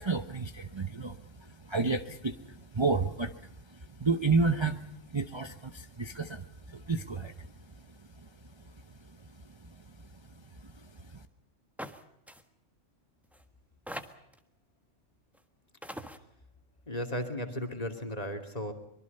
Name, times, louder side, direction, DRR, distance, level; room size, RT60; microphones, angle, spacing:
voice 1, 0.0-7.5 8.2-8.3 9.5-10.1 10.6-11.2, right 4 dB, 25° right, 7 dB, 0.9 m, -32 dB
sound 1, 11.8-12.0 12.3-12.4 13.3-13.4 13.9-14.4 15.4-15.5 15.8-16.2, equal, ahead, 1.4 m, -41 dB
voice 2, 16.9-18.7, equal, 30° left, 5 dB, 2.8 m, -35 dB
24.5 x 23.0 x 5.5 m, 0.80 s
omnidirectional pair, 1.3 m